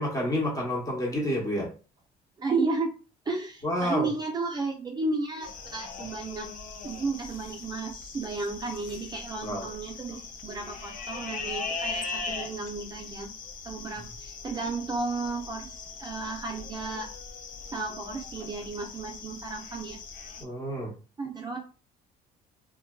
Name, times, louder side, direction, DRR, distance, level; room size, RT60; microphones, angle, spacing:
voice 1, 0.0-1.7 3.6-4.1 9.4-9.6 20.4-20.9, equal, 20° left, -2 dB, 0.9 m, -29 dB
voice 2, 2.4-2.9 3.3-6.5 6.8-13.3 13.6-17.1 17.7-20.0 21.2-21.6, right 3 dB, 25° right, 1 dB, 0.4 m, -33 dB
sound 1, 5.4-20.4, left 4 dB, 50° left, 0.4 m, -40 dB
2.5 x 2.2 x 2.2 m, 0.35 s
cardioid pair, 110°, 17 cm